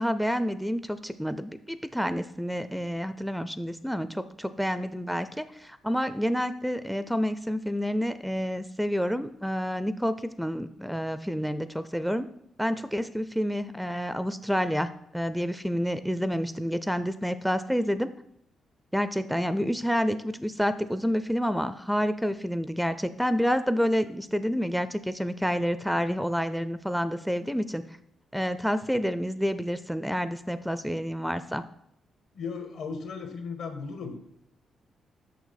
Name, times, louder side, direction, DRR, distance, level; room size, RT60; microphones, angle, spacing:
voice 1, 0.0-12.3 12.6-18.1 18.9-28.0 28.3-31.6, equal, ahead, 13 dB, 0.4 m, -29 dB
voice 2, 32.3-34.1, left 5 dB, 75° left, 7 dB, 1.3 m, -36 dB
6.3 x 6.0 x 5.7 m, 0.73 s
cardioid pair, 100°, 0 cm